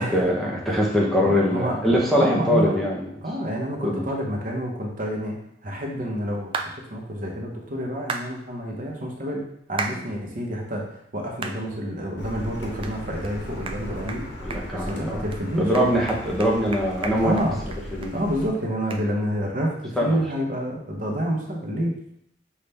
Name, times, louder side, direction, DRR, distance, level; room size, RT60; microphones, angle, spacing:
voice 1, 0.0-3.0 3.8-4.0 14.4-15.2 15.6-17.3 17.9-18.1 20.0-20.1, equal, ahead, -4 dB, 0.7 m, -22 dB
voice 2, 1.2-1.8 2.1-2.8 3.2-5.4 5.6-9.4 9.7-14.2 14.7-15.7 17.2-17.6 18.1-22.0, equal, 50° right, -1 dB, 0.9 m, -28 dB
sound 1, 6.5-6.7 8.1-8.3 9.8-10.0 10.5-10.6 11.4-11.6 12.1-12.2 12.8-12.9 13.2-13.3 13.7-13.8 14.1-14.2 14.5-15.0 15.3-15.4 15.7-18.1 18.4-18.5 18.9-19.0, right 4 dB, 30° right, 0.3 m, -32 dB
Car, 12.2-18.5, equal, 80° left, 0.9 m, -37 dB
5.4 x 2.4 x 3.3 m, 0.73 s
head